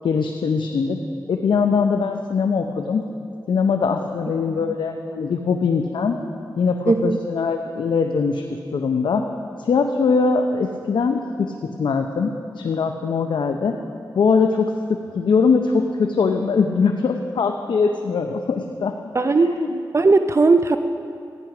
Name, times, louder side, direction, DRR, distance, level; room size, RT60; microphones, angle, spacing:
voice 1, 0.0-1.0 1.3-3.0 3.5-6.2 6.6-8.4 8.7-9.2 9.6-13.8 14.1-14.7 15.1-18.9 19.4-19.8, left 5 dB, 80° left, 5 dB, 0.6 m, -21 dB
voice 2, 6.9-7.2 19.1-19.5 19.9-20.8, right 3 dB, 35° right, 8 dB, 0.5 m, -17 dB
14.5 x 10.5 x 5.9 m, 2.5 s
cardioid pair, 55°, 8 cm